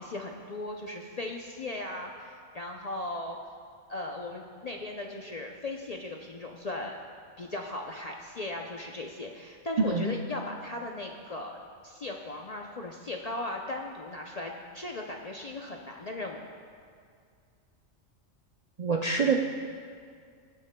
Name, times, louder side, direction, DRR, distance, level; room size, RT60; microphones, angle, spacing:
voice 1, 0.0-3.4 3.9-7.0 7.4-16.4, left 2 dB, 50° left, 1 dB, 0.5 m, -37 dB
voice 2, 18.8-19.4, right 4 dB, 50° right, 1 dB, 0.4 m, -25 dB
21.5 x 8.5 x 2.2 m, 2.2 s
omnidirectional pair, 1.3 m